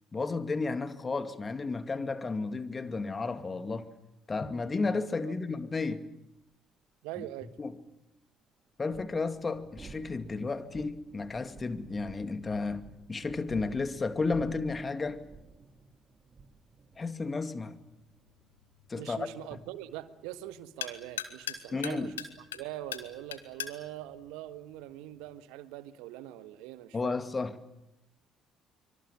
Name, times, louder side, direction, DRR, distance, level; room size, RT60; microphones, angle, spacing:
voice 1, 0.1-3.9 4.3-6.0 7.6-7.8 8.8-15.2 17.0-17.8 18.9-19.3 21.7-22.1 26.9-27.6, left 3 dB, 30° left, 2.3 m, -33 dB
sound 1, 6.5-6.6 8.7-24.3, right 4 dB, 35° right, 4.1 m, -53 dB
voice 2, 7.0-7.5 19.0-22.2 22.5-27.1, right 13 dB, 70° right, 1.5 m, -43 dB
sound 2, 17.7-25.3, left 9 dB, 85° left, 1.8 m, -44 dB
25.5 x 24.5 x 7.4 m
hypercardioid pair, 50°, 0 cm